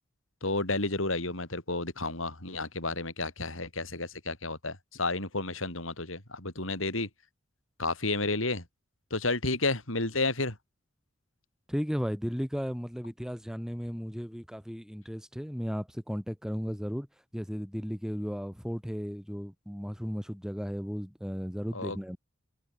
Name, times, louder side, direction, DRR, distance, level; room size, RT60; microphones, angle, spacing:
voice 1, 0.4-7.1 7.8-8.6 9.1-10.6 21.7-22.0, left 2 dB, 85° left, 6.9 m, -31 dB
voice 2, 11.7-17.1 17.3-22.2, equal, 5° right, 3.9 m, -35 dB
head